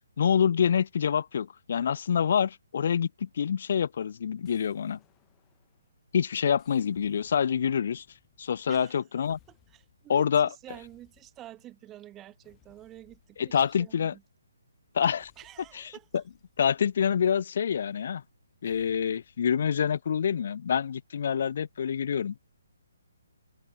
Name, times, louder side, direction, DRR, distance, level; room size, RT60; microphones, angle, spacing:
voice 1, 0.2-5.0 6.1-8.0 8.4-9.4 10.1-10.5 13.4-14.1 14.9-15.3 15.7-15.9 16.6-18.2 18.6-22.3, left 7 dB, 55° left, 0.5 m, -26 dB
sound 1, 4.4-6.0 6.6-8.9 9.2-10.1 10.7-11.7 12.4-14.3 15.0-17.5 18.6-19.4, left 18 dB, 20° left, 3.7 m, -66 dB
voice 2, 8.7-9.0 9.5-14.2 15.4-16.2, right 13 dB, 15° right, 0.7 m, -49 dB
hypercardioid pair, 150°, 0 cm